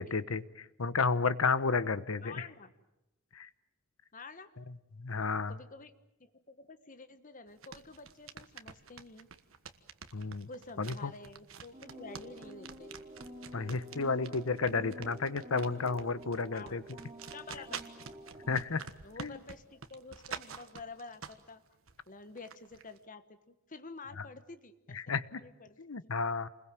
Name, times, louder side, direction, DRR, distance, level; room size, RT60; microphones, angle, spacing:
voice 1, 0.0-2.5 3.3-3.5 4.9-5.6 10.1-10.5 10.8-11.1 13.5-16.8 18.5-18.8 19.2-19.4 24.2-24.3 24.9-25.4 25.8-26.5, left 4 dB, 85° left, 15 dB, 1.0 m, -32 dB
voice 2, 2.2-2.7 4.1-4.5 5.5-5.9 6.2-9.3 10.5-12.9 16.5-16.8 17.3-17.9 19.0-21.6 22.1-26.1, left 3 dB, 40° left, 11 dB, 1.3 m, -49 dB
sound 1, 7.5-21.5 21.9-23.0, right 6 dB, 80° right, 1.4 m, -47 dB
sound 2, 11.7-18.6, equal, 25° right, 2.5 m, -49 dB
28.5 x 21.0 x 7.6 m, 0.94 s
head